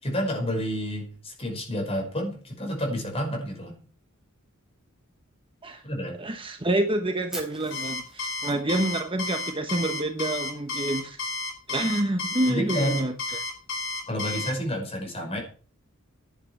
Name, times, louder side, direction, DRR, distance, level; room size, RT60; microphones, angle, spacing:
voice 1, 0.0-3.8 5.8-6.2 12.5-13.0 14.1-15.4, equal, 30° left, 1 dB, 5.5 m, -29 dB
voice 2, 6.2-11.2 11.7-13.4, right 1 dB, 25° right, 6 dB, 1.2 m, -28 dB
Fire, 7.3-9.4, right 1 dB, ahead, 3.7 m, -42 dB
Alarm, 7.7-14.5, left 3 dB, 65° left, 4.8 m, -32 dB
11.0 x 8.8 x 7.1 m, 0.39 s
head